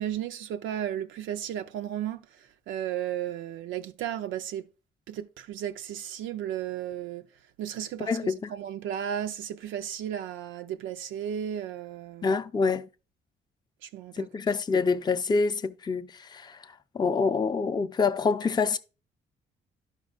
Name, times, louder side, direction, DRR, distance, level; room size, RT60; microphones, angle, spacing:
voice 1, 0.0-4.7 5.1-7.3 7.6-12.3 13.8-14.3, right 10 dB, 80° right, 0.4 m, -34 dB
voice 2, 8.0-8.5 12.2-12.9 14.1-16.6 16.9-18.8, left 4 dB, 20° left, 0.4 m, -26 dB
11.5 x 5.3 x 2.3 m
cardioid pair, 90°, 20 cm